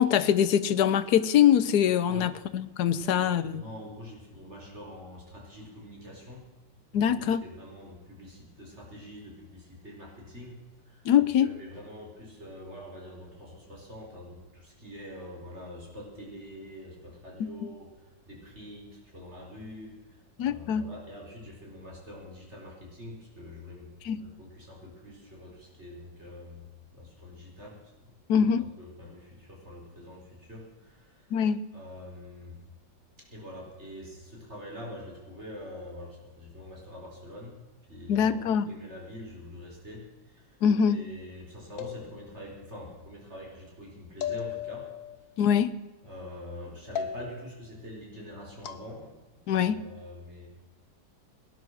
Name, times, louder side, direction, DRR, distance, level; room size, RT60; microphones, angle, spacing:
voice 1, 0.0-3.6 6.9-7.4 11.0-11.5 17.4-17.5 20.4-20.9 24.0-24.2 28.3-28.6 31.3-31.6 38.1-38.7 40.6-41.0 45.4-45.7 49.5-49.8, left 9 dB, 65° left, 12 dB, 1.2 m, -23 dB
voice 2, 3.0-6.4 6.9-10.6 10.9-27.8 28.8-31.4 31.7-32.6 33.2-37.6 37.9-44.9 46.0-50.5, left 1 dB, 35° right, -2 dB, 4.7 m, -45 dB
sound 1, 41.8-42.6 44.2-45.2 47.0-47.6 48.6-48.9, left 8 dB, 85° left, 1.7 m, -36 dB
18.5 x 10.5 x 6.4 m, 1.2 s
omnidirectional pair, 2.0 m